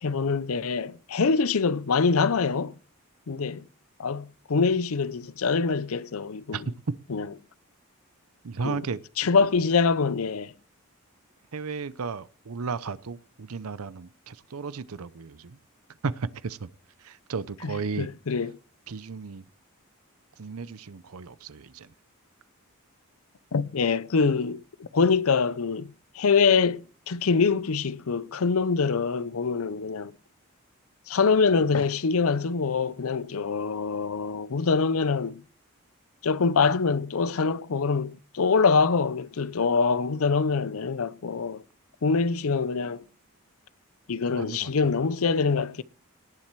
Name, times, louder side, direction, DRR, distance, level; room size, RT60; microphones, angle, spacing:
voice 1, 0.0-2.8 3.3-3.7 4.0-6.6 7.1-7.3 8.6-8.8 9.2-10.5 18.0-18.5 23.5-30.1 31.1-35.4 36.2-41.6 42.0-43.0 44.1-45.8, left 5 dB, 75° left, 0.6 m, -24 dB
voice 2, 8.4-9.0 11.5-15.6 16.0-16.7 17.0-18.1 18.9-19.4 20.4-21.9 44.3-45.0, right 5 dB, 85° right, 0.7 m, -34 dB
18.5 x 7.4 x 4.6 m
head